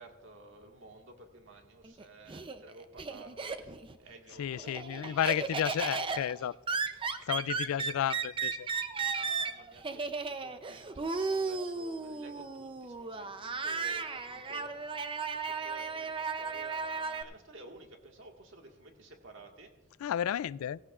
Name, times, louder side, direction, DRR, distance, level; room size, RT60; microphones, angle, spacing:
voice 1, 0.0-5.5 7.1-7.8 9.2-15.0 15.3-19.7, right 2 dB, 60° right, 3 dB, 1.8 m, -53 dB
Laughter, 1.8-4.0 4.3-17.2, right 4 dB, 25° right, 0.5 m, -35 dB
voice 2, 4.4-6.6 7.3-8.7 20.0-20.8, left 10 dB, 85° left, 21 dB, 0.3 m, -32 dB
16.5 x 16.0 x 2.4 m, 1.1 s
head